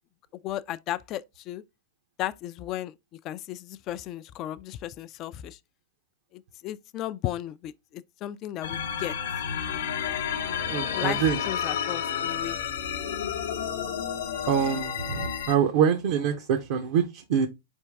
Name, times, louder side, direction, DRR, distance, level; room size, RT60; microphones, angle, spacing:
voice 1, 0.4-1.6 2.2-2.9 3.2-5.6 6.3-9.2 10.9-12.6, left 13 dB, 35° left, 0.3 m, -35 dB
sound 1, 8.6-15.6, left 8 dB, 70° left, 0.7 m, -31 dB
voice 2, 10.7-11.4 14.5-17.5, right 8 dB, 55° right, 0.6 m, -25 dB
4.5 x 3.5 x 3.4 m
figure-of-eight pair, 105°, 0 cm